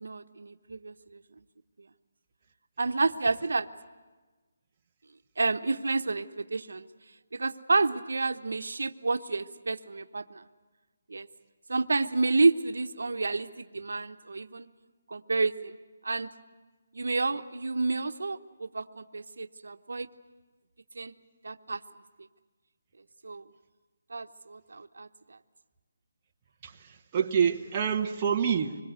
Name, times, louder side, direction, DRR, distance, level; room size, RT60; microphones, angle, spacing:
voice 1, 0.0-1.2 2.8-3.7 5.4-6.9 7.3-10.4 11.1-11.3 11.7-14.7 15.1-15.7 16.0-16.3 16.9-20.1 21.0-21.1 21.4-21.8 23.2-23.4 24.1-25.1, right 3 dB, 90° right, 8 dB, 1.0 m, -29 dB
voice 2, 26.6-28.8, right 7 dB, 20° right, 1 dB, 1.1 m, -27 dB
25.5 x 21.5 x 8.1 m, 1.3 s
hypercardioid pair, 170°, 0 cm